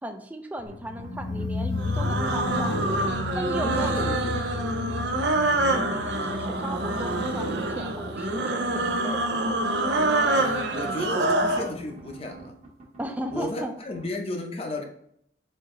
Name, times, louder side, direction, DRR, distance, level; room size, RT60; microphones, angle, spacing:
voice 1, 0.0-2.8 3.3-4.3 5.7-9.3 13.0-13.8, right 1 dB, 10° right, 5 dB, 0.4 m, -36 dB
sound 1, 0.6-11.6 11.9-12.0, left 3 dB, 85° left, 0.5 m, -34 dB
sound 2, 0.7-2.9 3.2-5.3 5.6-7.1 8.0-13.6 13.9-14.0, right 2 dB, 35° right, 1.1 m, -47 dB
sound 3, 1.8-11.7, right 2 dB, 65° right, 0.5 m, -26 dB
voice 2, 3.7-4.4 4.8-5.0 6.1-6.3 10.3-12.6 13.3-14.8, left 2 dB, 30° left, 2 dB, 0.7 m, -34 dB
4.4 x 2.9 x 3.6 m, 0.69 s
head